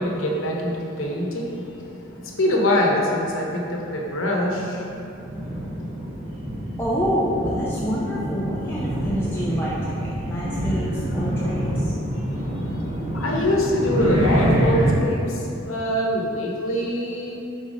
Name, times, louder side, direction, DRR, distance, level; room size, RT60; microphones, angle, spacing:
voice 1, 0.0-6.8 13.1-17.4, left 1 dB, 85° left, -1 dB, 0.9 m, -25 dB
sound 1, 5.0-14.9, equal, 25° right, 0.9 m, -26 dB
voice 2, 6.8-11.9, equal, 10° left, -7 dB, 0.5 m, -27 dB
5.1 x 4.0 x 5.2 m, 2.8 s
head